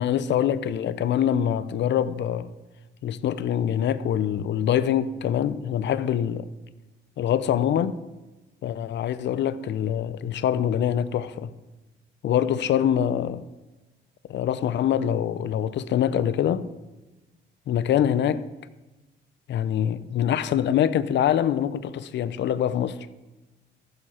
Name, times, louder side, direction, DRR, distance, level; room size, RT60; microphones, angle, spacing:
voice 1, 0.0-2.5 3.0-6.5 7.2-8.1 8.6-11.5 12.2-13.4 14.3-16.7 17.7-18.5 19.5-23.0, left 9 dB, 65° left, 0.6 m, -24 dB
14.5 x 6.9 x 4.3 m
cardioid pair, 90°, 20 cm